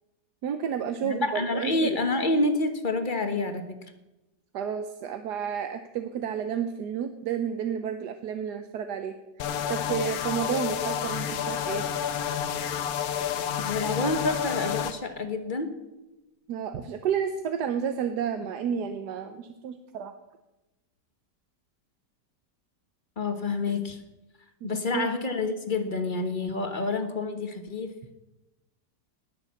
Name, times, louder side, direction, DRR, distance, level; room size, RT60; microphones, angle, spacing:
voice 1, 0.4-2.0 4.5-9.1 9.7-11.9 16.5-20.1 24.6-25.1, right 8 dB, 75° right, 8 dB, 1.3 m, -31 dB
voice 2, 1.0-3.8 13.6-15.7 23.2-24.0 24.6-27.9, left 3 dB, 30° left, 7 dB, 1.2 m, -28 dB
sound 1, 9.4-14.9, left 9 dB, 65° left, 1.2 m, -30 dB
19.0 x 6.7 x 7.2 m, 1.0 s
omnidirectional pair, 1.9 m